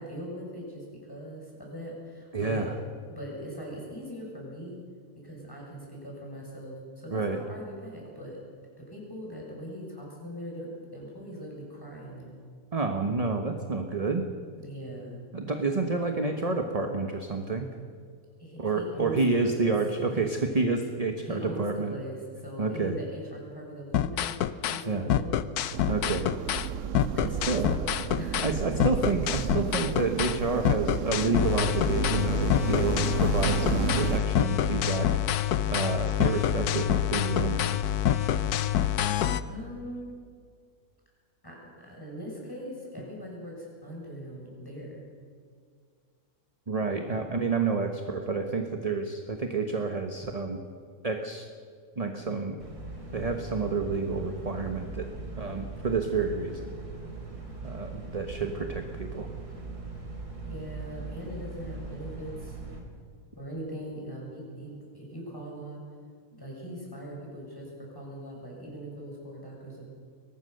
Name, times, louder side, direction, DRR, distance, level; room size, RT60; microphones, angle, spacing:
voice 1, 0.0-2.7 3.1-4.8 5.1-8.4 8.8-12.4 14.6-15.3 18.4-19.7 20.1-20.2 21.2-24.4 24.7-25.4 27.1-27.8 28.2-28.8 39.5-40.1 41.4-45.0 60.5-62.6 63.3-65.8 66.3-69.9, equal, 15° left, -3 dB, 6.5 m, -40 dB
voice 2, 2.3-2.7 7.1-7.4 12.7-14.3 15.3-17.7 18.6-21.9 22.6-23.0 24.8-25.1 25.9-26.3 27.5-27.7 28.4-35.1 35.7-38.0 46.7-50.6 51.0-51.5 52.0-52.6 53.1-55.1 55.4-56.7 57.6-59.3, right 4 dB, 25° right, 5 dB, 1.2 m, -29 dB
sound 1, 23.9-24.8 25.1-26.7 26.9-28.5 28.8-30.4 30.6-39.4, left 11 dB, 80° left, 1.3 m, -26 dB
sound 2, 25.7-34.2, right 9 dB, 60° right, 1.0 m, -32 dB
sound 3, 52.6-62.8, right 3 dB, 80° right, 4.0 m, -40 dB
22.5 x 19.0 x 6.7 m, 2.1 s
omnidirectional pair, 1.6 m